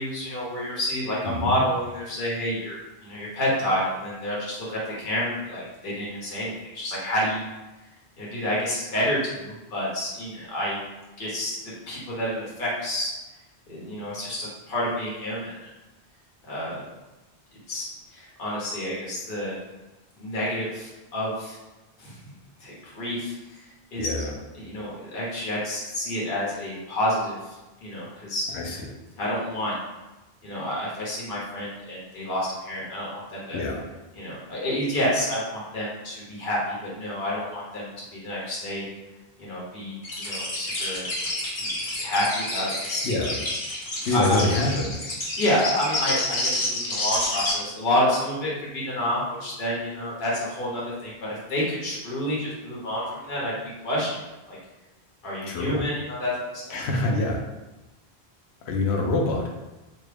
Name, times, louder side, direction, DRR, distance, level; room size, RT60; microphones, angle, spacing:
voice 1, 0.0-7.5 8.2-10.8 11.2-11.5 11.9-13.1 13.7-15.7 16.5-16.8 17.7-19.6 20.2-21.6 22.0-22.3 22.6-24.2 24.6-28.4 29.2-29.7 30.4-33.6 34.2-38.8 39.4-41.1 41.6-43.0 44.1-44.4 45.4-53.5 53.8-54.1 54.5-54.6 55.2-56.7, left 1 dB, 60° left, -6 dB, 1.1 m, -29 dB
voice 2, 1.2-1.6 24.0-24.3 28.5-28.8 33.5-33.9 43.0-43.4 44.0-45.0 55.5-55.8 56.7-57.4 58.7-59.5, left 2 dB, 90° left, 1 dB, 0.9 m, -25 dB
sound 1, 40.0-47.5, left 1 dB, 40° left, 0.8 m, -29 dB
3.5 x 2.4 x 3.3 m, 1.1 s
omnidirectional pair, 1.1 m